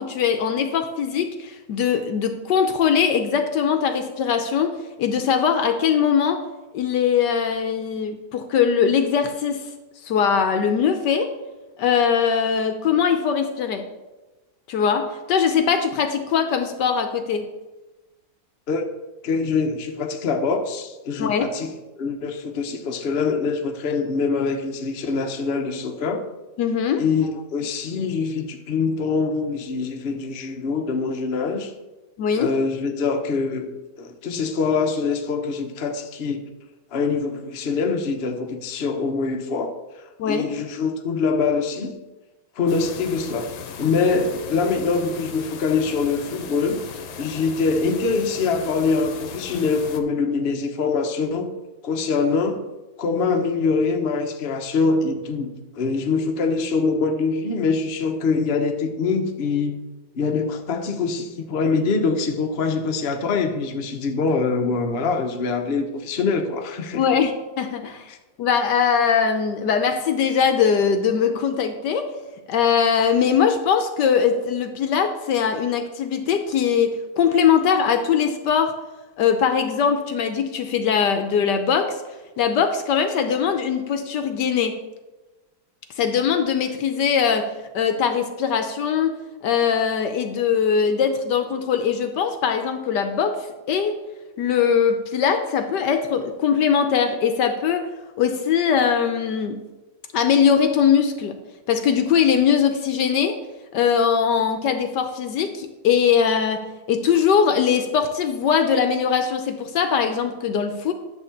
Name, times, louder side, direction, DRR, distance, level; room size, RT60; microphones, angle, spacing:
voice 1, 0.0-6.4 6.7-9.6 10.0-11.3 11.8-13.8 14.7-17.5 21.2-21.5 26.6-27.0 32.2-32.5 40.2-40.6 66.9-68.1 68.4-72.1 72.5-78.7 79.2-82.0 82.4-84.8 86.0-94.0 94.4-97.9 98.2-99.6 100.1-101.4 101.7-103.4 103.7-110.9, left 7 dB, 70° left, 7 dB, 1.2 m, -21 dB
voice 2, 19.2-26.2 27.0-31.7 32.4-33.7 34.0-36.5 36.9-39.8 40.2-41.9 42.6-43.5 43.8-46.8 47.2-51.5 51.8-52.6 53.0-59.8 60.1-67.0, left 4 dB, 50° left, 3 dB, 0.7 m, -24 dB
sound 1, 42.7-50.0, left 7 dB, 85° left, 1.6 m, -37 dB
10.5 x 3.7 x 7.0 m, 1.1 s
omnidirectional pair, 2.2 m